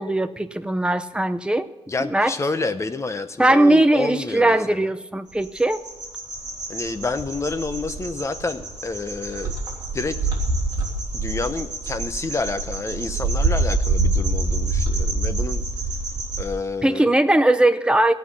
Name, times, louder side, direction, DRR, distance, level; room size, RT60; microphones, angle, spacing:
voice 1, 0.0-1.7 2.0-2.3 3.4-5.8 16.8-18.1, right 1 dB, 10° right, 11 dB, 0.6 m, -19 dB
voice 2, 1.9-4.9 6.7-9.5 9.9-10.2 11.1-15.6 16.4-17.1, left 3 dB, 25° left, 9 dB, 0.8 m, -29 dB
sound 1, 5.4-16.5, right 2 dB, 35° right, 3.3 m, -26 dB
17.0 x 5.9 x 8.5 m, 1.1 s
wide cardioid pair, 145°, 12 cm